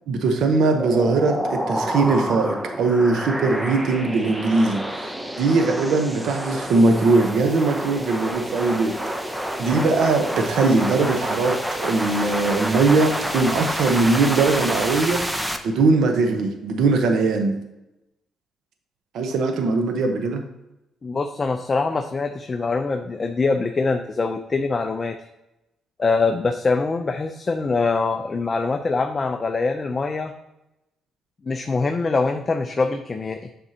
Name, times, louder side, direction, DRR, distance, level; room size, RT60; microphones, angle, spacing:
voice 1, 0.1-5.1 5.4-8.9 9.6-15.2 15.6-17.6 19.1-20.4, right 3 dB, 75° right, 5 dB, 0.9 m, -20 dB
sound 1, 0.8-15.6, equal, 10° right, 0.7 m, -28 dB
voice 2, 21.0-25.1 26.0-30.3 31.5-33.4, left 4 dB, 30° left, 6 dB, 0.5 m, -23 dB
7.8 x 5.4 x 2.8 m, 0.93 s
cardioid pair, 90°, 0 cm